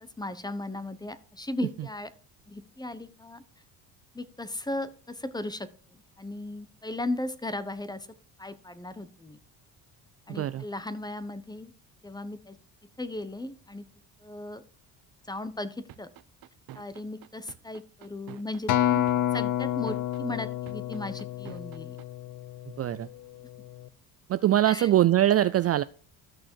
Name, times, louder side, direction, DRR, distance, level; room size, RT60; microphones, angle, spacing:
voice 1, 0.0-2.1 2.5-3.4 4.1-8.1 8.4-9.4 10.3-11.7 12.0-12.6 13.0-13.9 14.2-14.6 15.3-16.1 16.7-19.1 19.3-22.0 24.7-24.9, left 2 dB, 10° left, 14 dB, 1.0 m, -36 dB
voice 2, 10.3-10.6 22.8-23.1 24.3-25.8, right 12 dB, 40° right, 14 dB, 0.4 m, -23 dB
sound 1, 15.9-22.0, right 13 dB, 60° right, 0.9 m, -47 dB
Acoustic guitar, 18.7-23.1 23.7-23.9, left 12 dB, 50° left, 0.7 m, -29 dB
13.5 x 6.2 x 4.5 m, 0.39 s
cardioid pair, 95°, 41 cm